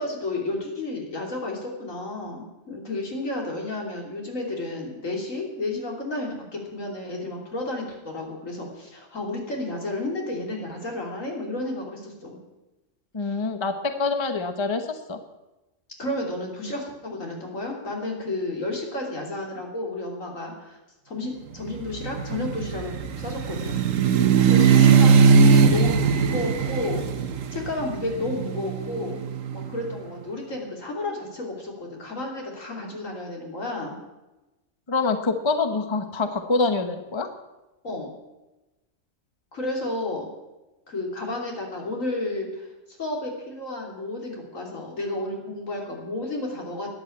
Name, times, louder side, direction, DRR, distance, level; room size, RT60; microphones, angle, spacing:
voice 1, 0.0-12.4 16.0-20.8 21.1-23.8 24.4-27.1 27.5-29.2 29.5-34.0 37.8-38.1 39.5-40.3 40.9-46.9, left 2 dB, 75° left, 0 dB, 3.6 m, -32 dB
voice 2, 13.1-15.2 34.9-37.3, left 3 dB, 25° left, 8 dB, 1.0 m, -25 dB
sound 1, 21.8-29.8, right 6 dB, 75° right, 1.3 m, -20 dB
12.5 x 10.0 x 8.6 m, 1.0 s
omnidirectional pair, 1.4 m